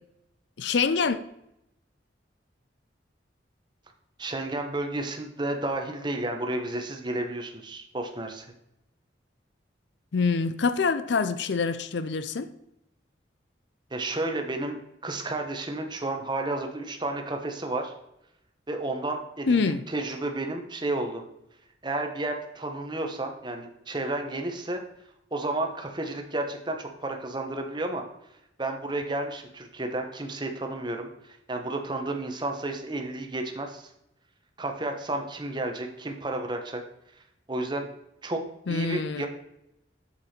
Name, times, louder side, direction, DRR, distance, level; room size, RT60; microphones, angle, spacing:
voice 1, 0.6-1.2 10.1-12.5 19.5-19.8 38.7-39.3, left 4 dB, 70° left, 0.5 m, -25 dB
voice 2, 4.2-8.5 13.9-14.8 15.0-17.9 18.7-21.2 21.8-24.8 25.3-28.0 28.6-33.9 34.6-36.8 37.5-37.9 38.2-38.4 38.7-39.3, right 2 dB, 25° right, 1.1 m, -32 dB
7.8 x 7.1 x 4.4 m
head